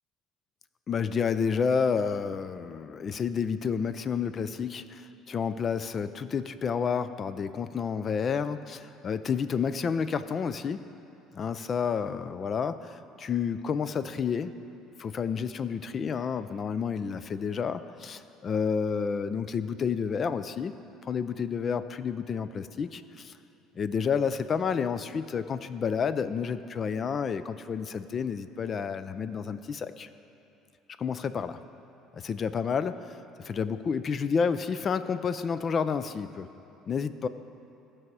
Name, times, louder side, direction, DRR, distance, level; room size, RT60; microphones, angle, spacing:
voice 1, 0.9-10.8 11.3-14.5 15.0-20.8 21.0-23.3 23.8-30.1 31.0-31.6 32.1-36.5 36.9-37.3, left 6 dB, 35° left, 13 dB, 0.4 m, -30 dB
15.5 x 6.0 x 4.7 m, 2.9 s
cardioid pair, 130°, 0 cm